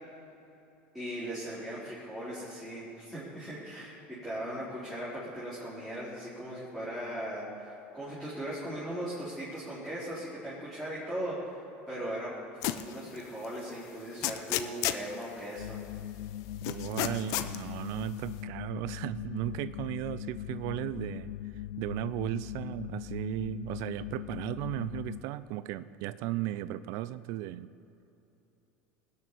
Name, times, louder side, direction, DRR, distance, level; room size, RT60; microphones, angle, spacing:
voice 1, 0.9-12.3 12.8-15.8, right 1 dB, ahead, -10 dB, 4.4 m, -38 dB
sound 1, 12.6-12.9 13.4-13.5 14.2-15.1 16.6-17.6, left 14 dB, 60° left, 0.8 m, -31 dB
sound 2, 15.6-25.2, left 13 dB, 90° left, 0.5 m, -40 dB
voice 2, 16.6-21.3 21.8-27.7, right 14 dB, 65° right, 16 dB, 0.5 m, -36 dB
19.0 x 6.7 x 8.6 m, 2.9 s
supercardioid pair, 110°, 6 cm